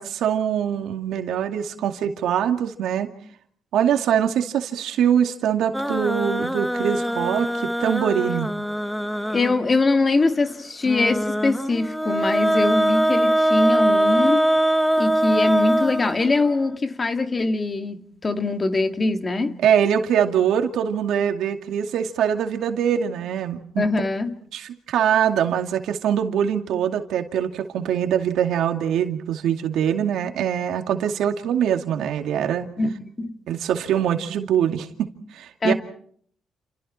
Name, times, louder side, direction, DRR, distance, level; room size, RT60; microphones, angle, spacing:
voice 1, 0.0-3.1 3.7-8.5 19.6-23.9 24.5-32.7 33.5-35.7, right 9 dB, 80° right, 2.3 m, -23 dB
sound 1, 5.7-9.8 10.9-16.7, right 1 dB, ahead, 1.3 m, -22 dB
voice 2, 9.3-14.5 15.0-19.6 23.8-24.3 32.8-33.4 35.6-35.7, left 3 dB, 30° left, 2.2 m, -22 dB
29.0 x 28.5 x 4.4 m
cardioid pair, 90°, 0 cm